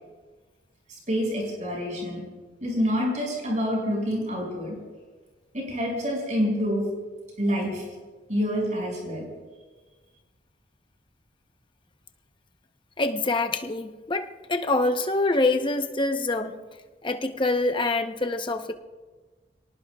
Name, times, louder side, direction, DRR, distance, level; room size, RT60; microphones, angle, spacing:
voice 1, 1.1-2.2 2.6-4.8 5.5-6.9 7.4-7.8 8.3-9.2, equal, 40° right, -1 dB, 6.0 m, -27 dB
voice 2, 13.0-16.6 17.0-18.7, left 2 dB, 25° left, 7 dB, 0.8 m, -25 dB
28.0 x 18.5 x 2.4 m, 1.3 s
head